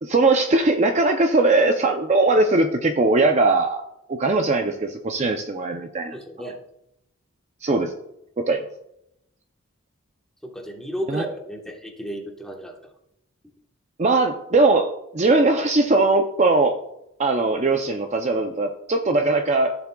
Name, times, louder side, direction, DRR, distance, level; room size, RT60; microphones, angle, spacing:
voice 1, 0.0-3.8 4.1-6.2 7.6-7.9 8.4-8.7 11.1-11.2 14.0-16.8 17.2-19.7, right 2 dB, 30° right, 5 dB, 0.5 m, -20 dB
voice 2, 6.1-6.6 10.4-12.8, right 1 dB, ahead, 0 dB, 1.2 m, -33 dB
15.0 x 7.0 x 2.3 m, 0.82 s
head